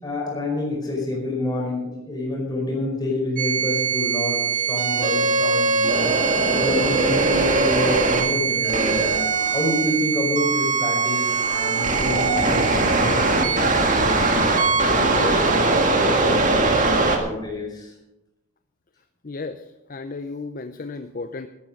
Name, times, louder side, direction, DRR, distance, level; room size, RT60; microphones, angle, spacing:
voice 1, 0.0-17.9, left 1 dB, 20° left, -1 dB, 5.0 m, -28 dB
sound 1, 3.4-17.2, right 3 dB, 35° right, 1.9 m, -21 dB
voice 2, 19.2-19.6 19.9-21.5, left 3 dB, 40° left, 9 dB, 0.6 m, -33 dB
13.0 x 12.5 x 5.3 m, 0.94 s
head